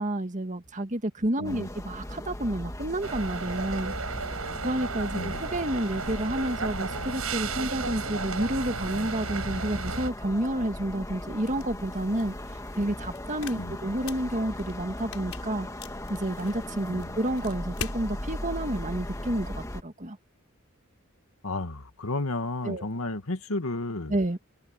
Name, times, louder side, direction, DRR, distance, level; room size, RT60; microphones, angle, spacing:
voice 1, 0.0-3.9 4.6-12.3 12.8-15.7 16.1-20.2 22.6-22.9 24.1-24.4, right 1 dB, 35° right, 2.0 m, -30 dB
voice 2, 1.4-1.7 5.1-5.4 13.6-13.8 16.9-17.1 21.4-24.1, left 2 dB, 90° left, 1.9 m, -32 dB
sound 1, 1.4-19.8, left 1 dB, 15° left, 2.0 m, -38 dB
sound 2, 3.0-10.1, right 4 dB, 90° right, 5.9 m, -34 dB
sound 3, 11.4-18.0, left 6 dB, 75° left, 5.2 m, -44 dB
head